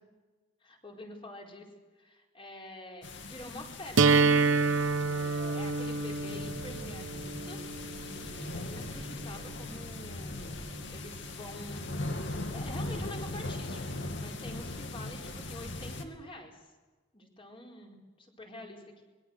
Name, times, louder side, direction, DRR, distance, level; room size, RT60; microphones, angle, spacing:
voice 1, 0.6-1.7 2.0-4.3 5.1-7.6 7.9-12.3 12.5-16.7 17.1-19.0, left 1 dB, 25° left, 1 dB, 4.7 m, -47 dB
sound 1, 3.0-16.0, left 2 dB, 65° left, 2.5 m, -39 dB
sound 2, 4.0-9.9, right 4 dB, 75° right, 1.1 m, -28 dB
25.0 x 22.0 x 6.6 m, 1.3 s
head